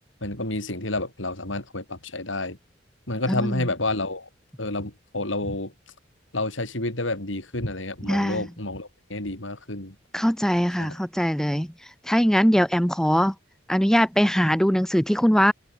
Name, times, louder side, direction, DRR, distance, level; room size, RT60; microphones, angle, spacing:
voice 1, 0.2-2.6 3.1-4.3 4.6-5.7 6.3-10.0 10.8-11.0, left 2 dB, 85° left, 5.9 m, -29 dB
voice 2, 8.1-8.5 10.1-11.7 12.1-13.3 13.7-15.5, equal, 5° left, 1.3 m, -21 dB
open air
head